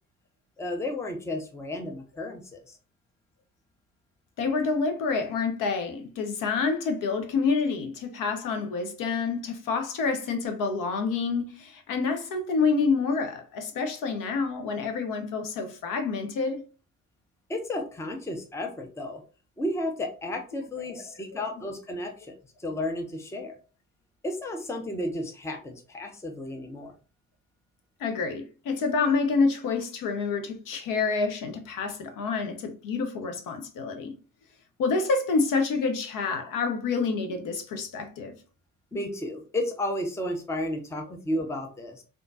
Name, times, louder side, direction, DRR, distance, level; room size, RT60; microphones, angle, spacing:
voice 1, 0.6-2.8 17.5-19.2 19.6-23.6 24.2-26.9 38.9-42.0, left 1 dB, 5° left, 0.6 m, -33 dB
voice 2, 4.4-16.6 21.3-21.4 28.0-34.1 34.8-38.3, left 4 dB, 50° left, 0.8 m, -28 dB
3.6 x 2.4 x 2.6 m
figure-of-eight pair, 50°, 43 cm